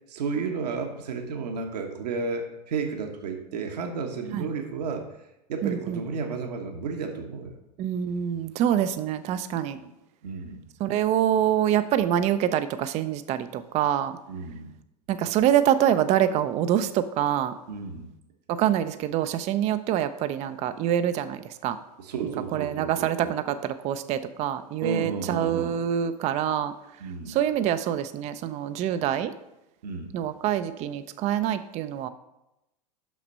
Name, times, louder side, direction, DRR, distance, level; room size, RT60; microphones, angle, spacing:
voice 1, 0.1-7.5 9.7-9.9 10.2-10.6 14.3-14.7 17.7-18.1 22.0-23.5 24.8-25.8 27.0-27.3 29.8-30.1, right 4 dB, 70° right, 4 dB, 1.1 m, -32 dB
voice 2, 5.6-6.0 7.8-9.8 10.8-14.2 15.1-17.5 18.5-21.8 22.5-26.7 27.3-29.3 30.1-32.1, right 10 dB, 30° right, 11 dB, 0.4 m, -25 dB
6.1 x 5.8 x 5.3 m, 0.92 s
hypercardioid pair, 95°, 21 cm